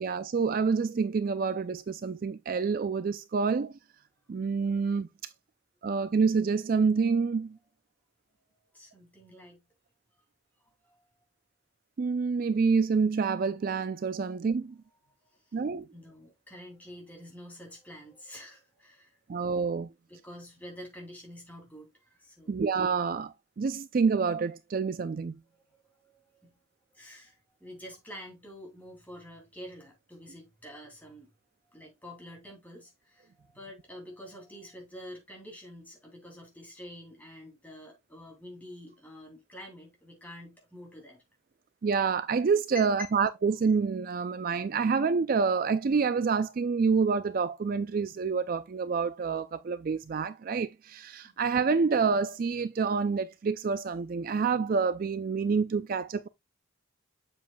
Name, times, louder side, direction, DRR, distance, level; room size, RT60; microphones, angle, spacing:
voice 1, 0.0-3.7 4.3-5.3 5.8-7.6 12.0-14.8 15.5-15.9 19.3-19.9 22.5-25.4 41.8-56.3, right 5 dB, 45° right, 0.3 m, -27 dB
voice 2, 8.4-9.6 10.6-11.1 15.2-19.2 20.1-22.6 25.7-26.5 26.9-31.3 31.7-41.2 42.7-43.1 51.2-51.4, left 1 dB, 10° left, 2.8 m, -48 dB
7.6 x 7.2 x 2.3 m
head